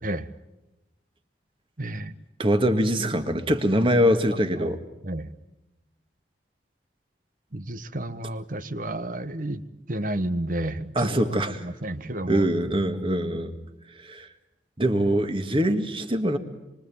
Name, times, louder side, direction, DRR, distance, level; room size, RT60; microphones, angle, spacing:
voice 1, 1.8-2.2 4.6-4.7 5.0-5.3 7.5-12.4, right 1 dB, 50° right, 13 dB, 1.2 m, -31 dB
voice 2, 2.4-4.8 11.0-11.7 12.3-13.5 14.0-14.3 14.8-16.4, equal, 30° right, 7 dB, 1.9 m, -23 dB
27.0 x 24.0 x 8.7 m, 0.99 s
head